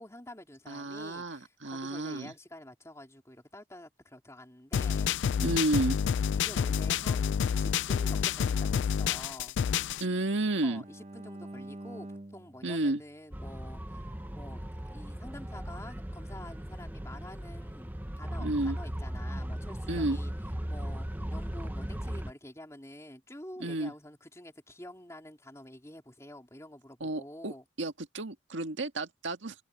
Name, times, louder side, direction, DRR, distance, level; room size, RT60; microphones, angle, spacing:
voice 1, 0.0-5.4 6.3-9.6 10.6-17.9 18.2-20.3 20.7-27.6, left 1 dB, 15° left, 3.6 m, -48 dB
voice 2, 0.7-2.3 5.4-6.0 10.0-10.8 12.6-13.0 18.4-18.8 19.9-20.2 23.6-23.9 27.0-29.6, right 2 dB, 85° right, 1.8 m, -31 dB
sound 1, 4.7-10.0, left 7 dB, 75° left, 0.3 m, -28 dB
Bowed string instrument, 9.6-13.8, right 1 dB, 35° right, 1.0 m, -48 dB
sound 2, 13.3-22.3, equal, 10° right, 0.9 m, -37 dB
head